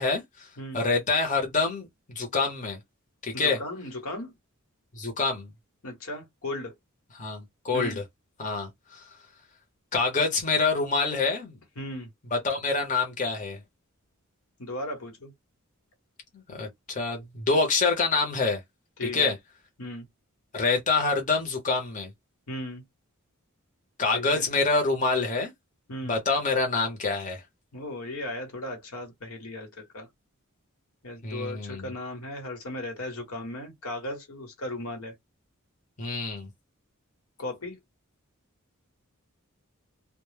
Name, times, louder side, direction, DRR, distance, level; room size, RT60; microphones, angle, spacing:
voice 1, 0.0-0.5 0.7-1.9 2.1-2.8 3.2-3.6 4.9-5.5 7.2-7.9 8.4-9.1 9.9-11.6 12.3-13.6 16.5-18.6 19.0-19.4 20.5-22.1 24.0-25.5 26.1-27.4 31.2-31.9 36.0-36.5, left 4 dB, 35° left, 0.7 m, -26 dB
voice 2, 3.3-4.3 5.8-6.8 7.7-8.0 11.8-12.1 14.6-15.3 19.0-19.3 19.8-20.1 22.5-22.8 24.1-24.4 25.9-26.2 27.7-30.1 31.0-35.1 37.4-37.8, left 1 dB, 80° left, 1.1 m, -36 dB
2.1 x 2.0 x 3.2 m
head